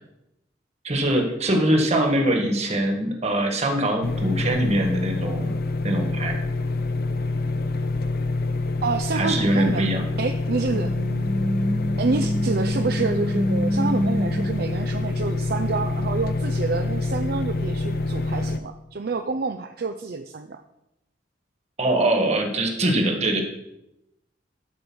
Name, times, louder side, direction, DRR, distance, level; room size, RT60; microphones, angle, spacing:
voice 1, 0.8-5.5 5.8-6.4 9.1-10.0 21.8-23.4, right 1 dB, 40° right, 3 dB, 1.6 m, -22 dB
sound 1, 4.0-18.6, left 2 dB, 55° left, 0.6 m, -26 dB
voice 2, 8.8-9.8 10.2-10.9 12.0-20.6, right 4 dB, 55° right, 7 dB, 0.5 m, -28 dB
sound 2, 10.7-15.2, equal, 5° right, 0.8 m, -27 dB
12.0 x 5.2 x 6.2 m, 0.88 s
head